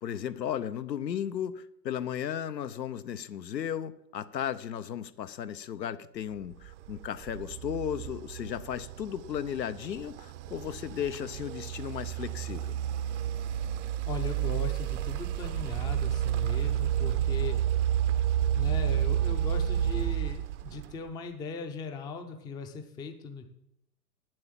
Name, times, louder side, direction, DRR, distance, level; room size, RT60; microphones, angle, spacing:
voice 1, 0.0-12.7, left 9 dB, 80° left, 13 dB, 0.9 m, -35 dB
sound 1, 6.6-21.1, right 11 dB, 45° right, 0.7 m, -30 dB
voice 2, 14.1-17.6 18.5-23.4, left 4 dB, 10° left, 6 dB, 0.5 m, -39 dB
9.0 x 7.7 x 7.4 m, 0.81 s
hypercardioid pair, 120°, 50 cm